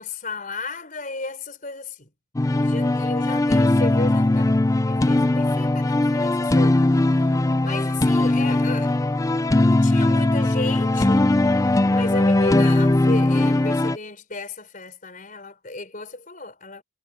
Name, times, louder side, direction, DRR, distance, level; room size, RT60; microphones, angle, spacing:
voice 1, 0.0-2.1 2.5-4.6 4.9-7.3 7.6-9.0 9.8-11.3 11.9-16.8, left 3 dB, 40° left, 4.5 m, -34 dB
sound 1, 2.4-14.0, left 2 dB, 15° left, 0.4 m, -19 dB
head